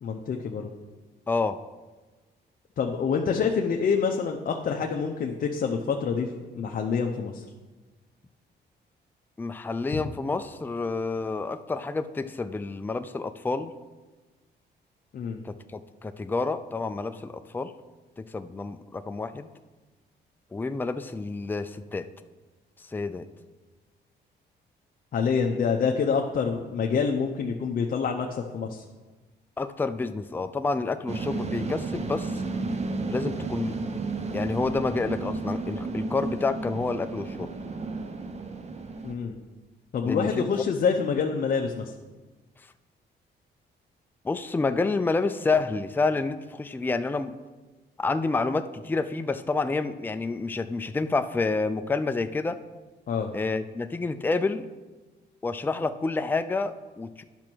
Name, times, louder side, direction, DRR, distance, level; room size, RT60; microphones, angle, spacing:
voice 1, 0.0-0.7 2.8-7.4 9.9-10.0 15.1-15.4 25.1-28.8 39.0-39.3 39.9-41.9 53.1-53.3, left 6 dB, 50° left, 1 dB, 0.7 m, -27 dB
voice 2, 1.3-1.6 9.4-13.7 15.4-17.7 18.2-19.5 20.5-22.1 22.9-23.3 29.6-32.4 33.1-33.8 34.3-37.5 40.0-40.5 44.2-47.3 48.0-52.6 53.3-54.7 55.4-57.2, left 3 dB, 10° left, 9 dB, 0.4 m, -29 dB
sound 1, 31.1-39.1, right 3 dB, 35° right, 0.8 m, -32 dB
10.5 x 6.1 x 4.5 m, 1.2 s
cardioid pair, 110°, 19 cm